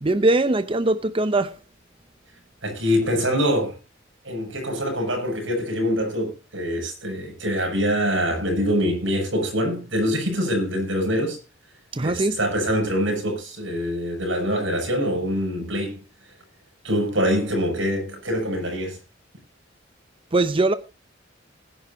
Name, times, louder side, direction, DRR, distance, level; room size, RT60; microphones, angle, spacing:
voice 1, 0.0-1.5 11.9-12.4 20.3-20.7, right 2 dB, 30° right, 0.7 m, -21 dB
voice 2, 2.6-3.8 4.2-11.4 12.0-16.0 16.8-19.0, equal, 85° right, 7.5 m, -24 dB
20.0 x 11.0 x 2.8 m
head